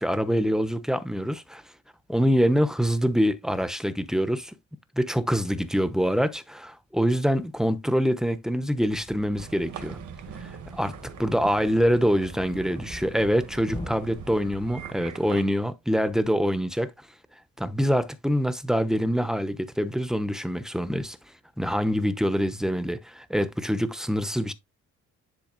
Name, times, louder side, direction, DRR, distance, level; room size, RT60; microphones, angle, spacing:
voice 1, 0.0-1.6 2.1-4.5 5.0-10.0 10.4-10.9 11.2-16.9 17.6-21.2 21.6-24.5, equal, ahead, 0.9 m, -25 dB
Thump thud, 8.8-15.0, left 2 dB, 15° left, 1.2 m, -43 dB
sound 1, 9.3-15.4, right 9 dB, 75° right, 1.7 m, -42 dB
10.5 x 4.1 x 2.6 m
cardioid pair, 90°, 30 cm